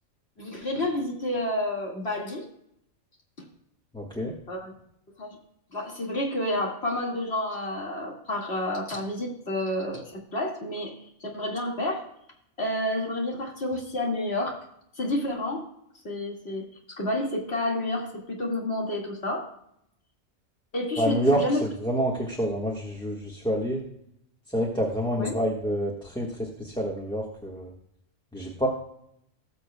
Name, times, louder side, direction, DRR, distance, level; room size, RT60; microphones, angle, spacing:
voice 1, 0.4-2.5 4.5-4.7 5.2-5.4 5.7-10.9 11.2-12.1 12.6-14.6 15.0-15.7 16.0-19.5 20.7-21.6 25.2-25.3, left 1 dB, 55° left, -1 dB, 2.2 m, -30 dB
voice 2, 3.9-4.3 21.0-23.8 24.5-27.7 28.3-28.7, equal, 5° left, -2 dB, 1.3 m, -28 dB
18.5 x 7.0 x 2.2 m, 0.74 s
omnidirectional pair, 1.3 m